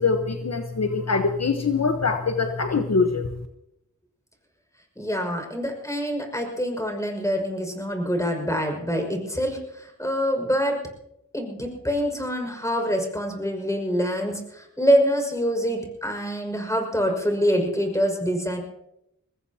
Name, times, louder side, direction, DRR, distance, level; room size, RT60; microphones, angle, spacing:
voice 1, 0.0-3.3, left 4 dB, 60° left, 6 dB, 1.1 m, -23 dB
voice 2, 5.0-10.8 11.3-18.6, equal, 10° left, 2 dB, 5.7 m, -25 dB
23.5 x 20.0 x 2.9 m, 0.82 s
wide cardioid pair, 55°, 30 cm